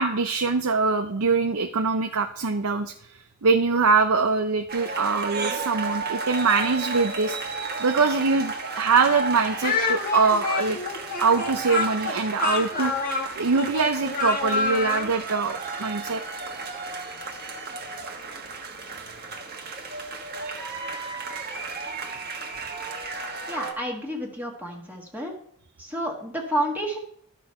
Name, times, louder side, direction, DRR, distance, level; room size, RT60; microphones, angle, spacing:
voice 1, 0.0-2.9 3.4-7.4 7.8-10.8 11.2-13.0 13.4-16.2, right 4 dB, 75° right, 5 dB, 0.6 m, -23 dB
sound 1, 4.7-23.7, right 4 dB, 45° right, 1.4 m, -34 dB
Speech, 9.6-15.1, left 4 dB, 40° left, 1.3 m, -27 dB
voice 2, 23.5-25.3 25.8-27.0, right 1 dB, 10° right, -1 dB, 1.4 m, -30 dB
12.5 x 6.2 x 4.3 m, 0.67 s
head